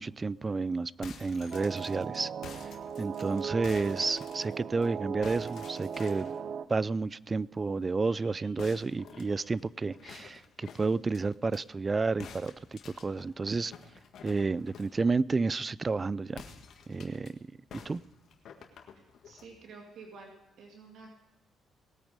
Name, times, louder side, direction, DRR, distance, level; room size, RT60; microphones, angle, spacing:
voice 1, 0.0-2.3 3.0-6.3 6.7-13.7 14.2-16.4 16.9-17.4 17.7-18.0, right 4 dB, 30° right, 21 dB, 0.4 m, -31 dB
sound 1, 0.8-4.9 5.2-6.4 8.6-11.6 12.2-15.0 16.3-17.3 17.7-19.5, left 6 dB, 70° left, 1.7 m, -50 dB
sound 2, 1.5-6.7, right 7 dB, 60° right, 0.7 m, -38 dB
sound 3, 8.0-11.0 11.9-12.0, left 2 dB, 10° right, 5.3 m, -64 dB
voice 2, 18.9-21.2, right 4 dB, 75° right, 1 dB, 2.2 m, -51 dB
19.0 x 8.8 x 5.1 m, 0.99 s
cardioid pair, 90°, 0 cm